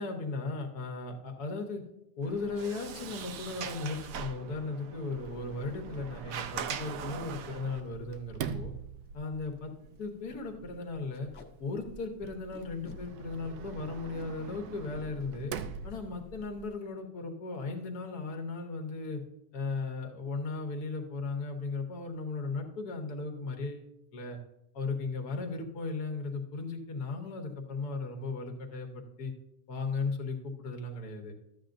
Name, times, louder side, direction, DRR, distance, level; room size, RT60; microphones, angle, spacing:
voice 1, 0.0-1.8 2.2-8.7 9.1-9.7 10.0-11.3 11.6-15.5 15.8-19.2 19.5-24.4 24.7-29.3 29.7-31.3, left 3 dB, 85° left, 4 dB, 1.7 m, -36 dB
Sliding door, 2.2-7.8, right 8 dB, 70° right, 1.0 m, -41 dB
Sliding door 2, 5.2-16.7, right 6 dB, 90° right, 1.2 m, -44 dB
Packing tape duct tape, 7.7-7.8 8.1-8.2 8.4-8.6 9.1-9.2 9.4-9.6 9.9-10.1 11.1-11.5 12.5-13.0 14.0-14.3 15.8-16.0 16.4-16.6 16.8-17.2, left 4 dB, 55° left, 1.3 m, -52 dB
13.0 x 8.4 x 2.6 m, 0.88 s
omnidirectional pair, 1.6 m